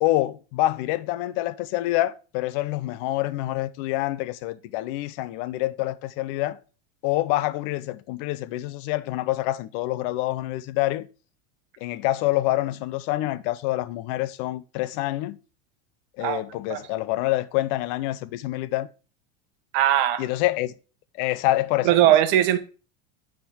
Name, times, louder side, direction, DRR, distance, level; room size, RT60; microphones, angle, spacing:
voice 1, 0.0-6.6 7.0-11.1 11.8-15.4 16.2-18.9 20.2-20.8 21.1-21.9, left 16 dB, 50° left, 0.6 m, -26 dB
voice 2, 19.7-20.3 21.8-22.6, right 12 dB, 60° right, 1.1 m, -19 dB
8.9 x 3.7 x 4.8 m
supercardioid pair, 155°, 36 cm